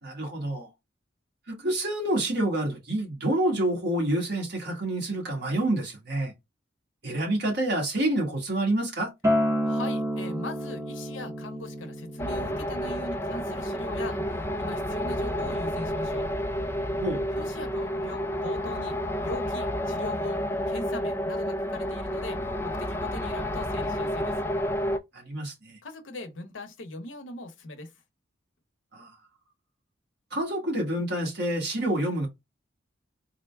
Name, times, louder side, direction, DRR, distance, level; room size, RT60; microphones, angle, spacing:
voice 1, 0.0-0.7 1.5-6.3 7.0-9.1 17.0-17.3 25.1-25.8 28.9-29.1 30.3-32.3, right 1 dB, 60° right, 1.5 m, -28 dB
Acoustic guitar, 9.2-14.4, equal, 15° right, 0.7 m, -30 dB
voice 2, 9.6-16.3 17.4-19.0 19.2-24.5 25.8-27.9, left 2 dB, 75° left, 0.8 m, -40 dB
sound 1, 12.2-25.0, equal, 10° left, 0.3 m, -30 dB
3.8 x 2.2 x 3.3 m
head